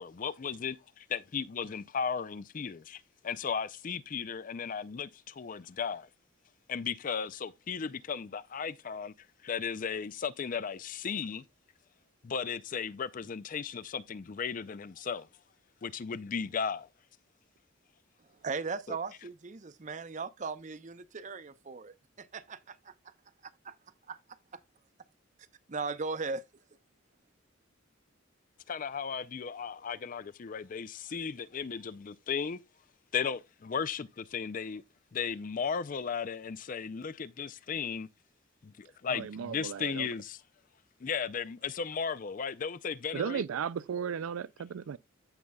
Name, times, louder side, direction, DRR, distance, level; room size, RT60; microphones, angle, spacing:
voice 1, 0.0-6.1 6.7-9.1 9.4-11.4 12.2-15.3 15.8-16.9 18.9-19.0 28.7-32.6 33.1-34.8 35.1-38.1 38.6-40.4 41.0-43.4, left 6 dB, 40° left, 0.4 m, -35 dB
voice 2, 18.4-22.9 23.6-23.7 24.1-24.2 25.7-26.4, right 4 dB, 35° right, 0.6 m, -38 dB
voice 3, 39.1-40.1 43.1-45.0, right 7 dB, 85° right, 0.4 m, -35 dB
15.0 x 5.3 x 2.3 m
head